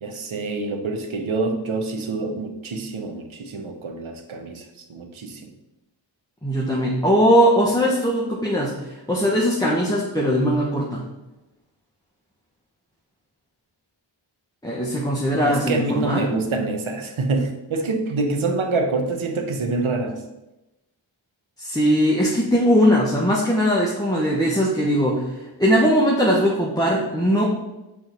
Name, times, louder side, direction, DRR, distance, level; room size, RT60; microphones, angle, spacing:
voice 1, 0.0-4.6 4.9-5.5 15.4-20.2, right 3 dB, 75° right, 4 dB, 1.1 m, -26 dB
voice 2, 6.4-11.0 14.6-16.4 21.6-25.3 25.6-27.5, equal, 10° left, -4 dB, 1.2 m, -20 dB
6.0 x 3.5 x 5.8 m, 0.98 s
cardioid pair, 45°, 48 cm